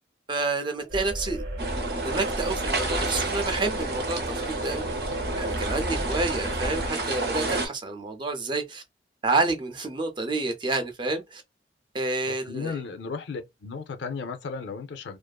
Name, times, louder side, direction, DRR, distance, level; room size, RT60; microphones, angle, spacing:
voice 1, 0.3-1.4 2.0-4.9 5.4-8.8 9.2-11.4 11.9-12.8, right 3 dB, 25° right, 0.4 m, -29 dB
sound 1, 0.9-6.9, equal, 90° right, 0.9 m, -34 dB
sound 2, 1.6-7.7, right 2 dB, 60° right, 0.7 m, -30 dB
voice 2, 12.5-15.2, left 5 dB, 80° left, 0.5 m, -35 dB
2.4 x 2.4 x 2.2 m
head